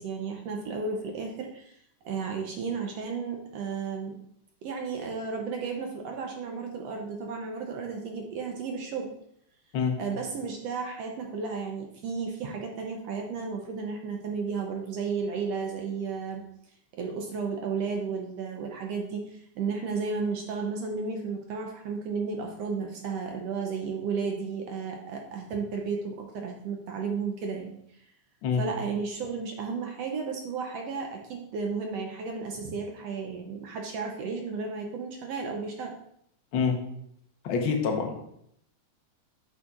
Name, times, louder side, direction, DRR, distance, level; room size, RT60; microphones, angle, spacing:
voice 1, 0.0-4.1 4.6-9.1 10.0-16.4 16.9-28.0 28.6-35.9, right 5 dB, 75° right, 1 dB, 1.6 m, -33 dB
voice 2, 37.4-38.2, left 6 dB, 65° left, 2 dB, 1.3 m, -26 dB
7.9 x 6.7 x 2.4 m, 0.71 s
omnidirectional pair, 3.4 m